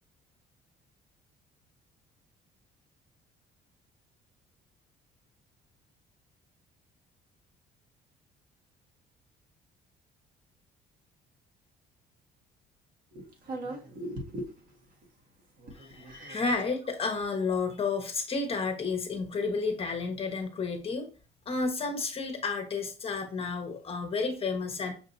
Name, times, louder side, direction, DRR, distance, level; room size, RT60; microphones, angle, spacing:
voice 1, 13.1-14.7 15.6-16.5, right 1 dB, 60° right, 1.7 m, -40 dB
voice 2, 15.8-21.1 21.5-24.9, left 4 dB, 35° left, 1.0 m, -31 dB
6.1 x 2.8 x 2.7 m
cardioid pair, 110°, 17 cm